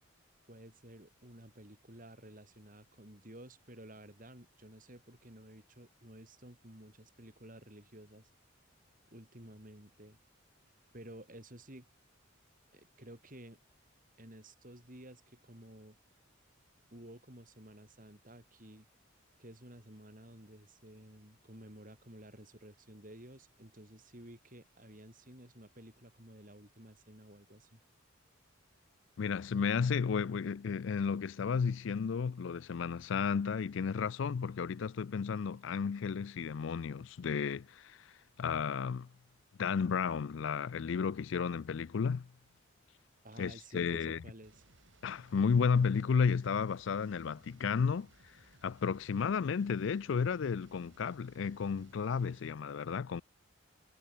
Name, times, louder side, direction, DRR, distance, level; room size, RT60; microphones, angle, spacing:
voice 1, 0.5-8.3 9.1-10.2 10.9-11.9 12.7-13.6 14.2-16.0 16.9-18.9 19.4-27.8 43.2-44.6, right 1 dB, 40° right, 4.5 m, -53 dB
voice 2, 29.2-38.0 38.4-39.1 39.6-42.3 43.4-44.2 45.0-48.1 48.6-53.2, left 6 dB, 60° left, 0.4 m, -33 dB
sound 1, 44.4-52.5, right 2 dB, 60° right, 5.8 m, -64 dB
head